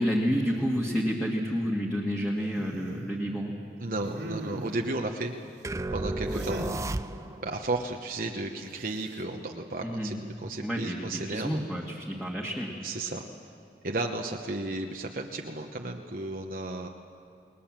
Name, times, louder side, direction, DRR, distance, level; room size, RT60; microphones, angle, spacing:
voice 1, 0.0-3.5 6.3-6.5 9.8-10.1 10.6-12.8, equal, 5° left, -3 dB, 1.8 m, -30 dB
sound 1, 2.5-3.1 3.9-4.9 6.3-6.8 8.8-9.2, right 1 dB, 85° right, 3.0 m, -38 dB
voice 2, 3.8-5.3 5.9-6.6 7.4-11.6 12.8-13.2 13.8-16.9, right 2 dB, 50° right, 2 dB, 1.0 m, -33 dB
sound 2, 5.6-7.5, right 2 dB, 15° right, 0.5 m, -33 dB
29.0 x 20.5 x 7.5 m, 2.8 s
head